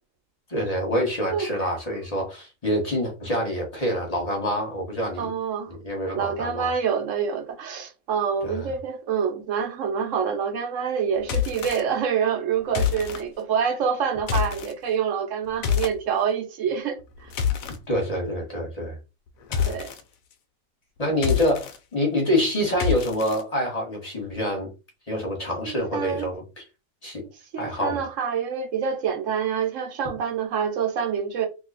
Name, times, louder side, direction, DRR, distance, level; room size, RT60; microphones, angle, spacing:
voice 1, 0.5-5.3 5.7-6.7 8.4-8.7 17.9-19.0 19.5-19.8 21.0-24.7 25.1-26.6 27.0-27.2 27.6-28.0, equal, 25° left, 1.2 m, -26 dB
voice 2, 1.3-1.7 5.2-5.7 6.1-17.0 19.7-19.9 21.1-21.2 25.6-26.3 27.5-31.5, right 7 dB, 55° right, 1.1 m, -26 dB
sound 1, 11.2-11.8 12.7-13.2 14.2-14.7 15.6-16.0 17.0-17.8 19.5-20.0 21.1-21.8 22.8-23.4, left 8 dB, 70° left, 0.9 m, -26 dB
2.9 x 2.4 x 3.9 m
omnidirectional pair, 1.7 m